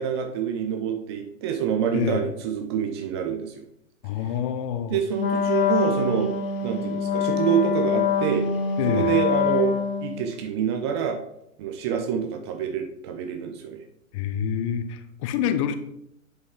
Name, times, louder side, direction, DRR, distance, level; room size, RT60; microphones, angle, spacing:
voice 1, 0.0-3.6 4.9-6.3 6.6-8.5 8.9-11.2 11.6-13.8, right 8 dB, 20° right, 5 dB, 0.5 m, -26 dB
voice 2, 1.9-2.2 4.0-5.0 8.8-9.1 14.1-15.7, left 9 dB, 25° left, 10 dB, 0.6 m, -27 dB
Wind instrument woodwind instrument, 5.1-10.3, left 6 dB, 40° left, 1.2 m, -25 dB
8.1 x 5.2 x 3.7 m, 0.78 s
figure-of-eight pair, 120°, 40 cm